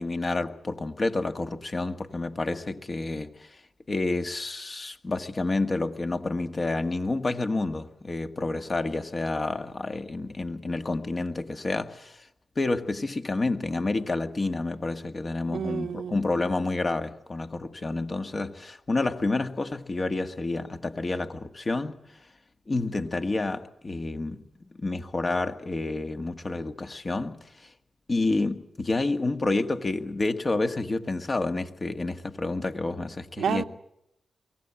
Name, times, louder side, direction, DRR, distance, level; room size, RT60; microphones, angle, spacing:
voice 1, 0.0-3.5 3.9-12.2 12.6-22.0 22.7-24.4 24.8-27.4 28.1-33.6, left 2 dB, 45° left, 1.8 m, -29 dB
voice 2, 15.5-16.2 33.4-33.6, right 7 dB, 80° right, 0.8 m, -29 dB
23.5 x 17.5 x 8.9 m
supercardioid pair, 45°, 0 cm